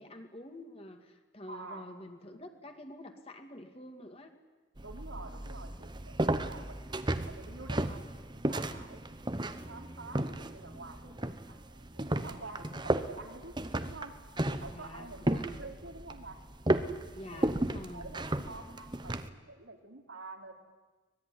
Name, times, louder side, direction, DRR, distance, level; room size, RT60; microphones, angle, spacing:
voice 1, 0.0-4.3 14.7-15.5 17.1-18.1, left 1 dB, 30° left, 5 dB, 2.2 m, -47 dB
voice 2, 1.5-2.0 2.3-2.5 4.8-8.0 8.3-9.1 9.7-13.5 13.8-14.1 14.5-16.4 17.3-20.5, right 3 dB, 80° right, 2 dB, 3.6 m, -48 dB
sound 1, 4.8-19.3, right 1 dB, 20° right, 1.0 m, -34 dB
24.5 x 20.5 x 9.9 m, 1.3 s
head